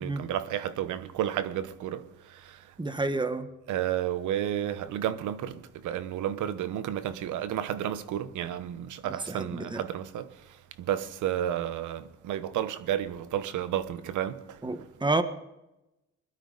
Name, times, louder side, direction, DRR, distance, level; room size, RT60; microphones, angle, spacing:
voice 1, 0.0-2.0 2.5-2.6 3.7-10.3 10.8-14.4, right 11 dB, 85° right, 1.0 m, -31 dB
voice 2, 2.8-3.5 9.3-9.8 14.6-15.2, right 2 dB, 15° right, 1.3 m, -29 dB
21.0 x 13.0 x 4.0 m
cardioid pair, 90°, 30 cm